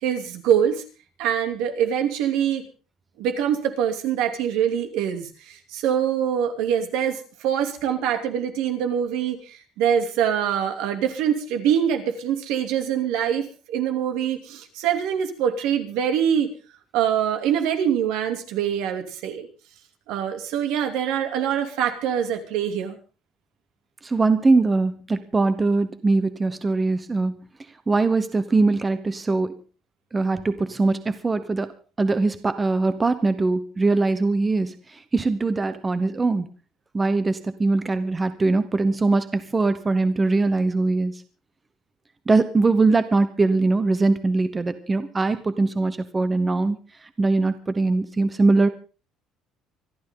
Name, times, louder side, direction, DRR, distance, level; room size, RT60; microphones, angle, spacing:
voice 1, 0.0-0.8 1.2-2.6 3.2-16.5 16.9-19.5 20.1-23.0, right 9 dB, 80° right, 6 dB, 2.9 m, -24 dB
voice 2, 24.0-27.4 27.9-29.6 30.1-31.7 32.0-36.5 36.9-41.2 42.3-46.8 47.2-48.7, right 3 dB, 15° right, 11 dB, 0.9 m, -21 dB
25.5 x 12.0 x 3.8 m, 0.36 s
cardioid pair, 175°, 0 cm